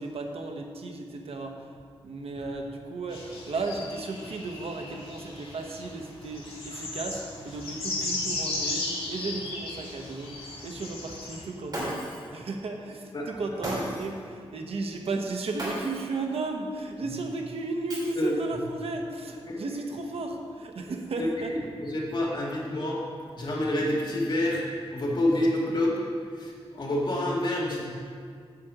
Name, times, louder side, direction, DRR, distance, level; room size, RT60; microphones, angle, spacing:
voice 1, 0.0-1.7 2.0-10.3 10.6-21.5, right 3 dB, 75° right, 3 dB, 1.0 m, -34 dB
sound 1, 3.1-11.4, left 2 dB, 70° left, 2.2 m, -36 dB
Shatter, 11.7-12.3 13.6-14.2 15.6-16.2 17.9-18.6, right 1 dB, 40° right, 3.0 m, -35 dB
voice 2, 21.8-23.0 23.4-24.6 24.9-25.9 26.4-27.9, left 1 dB, 50° left, -5 dB, 2.2 m, -27 dB
9.6 x 4.9 x 7.6 m, 2.1 s
wide cardioid pair, 140°, 10 cm